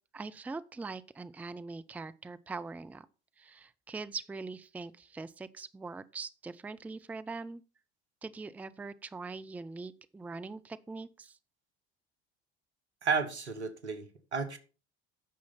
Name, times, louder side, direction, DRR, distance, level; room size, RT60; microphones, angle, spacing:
voice 1, 0.1-3.1 3.4-7.6 8.2-11.4, right 4 dB, 5° right, 0.4 m, -42 dB
voice 2, 13.0-14.6, right 5 dB, 80° right, 1.2 m, -32 dB
9.3 x 6.2 x 5.7 m
figure-of-eight pair, 60°, 33 cm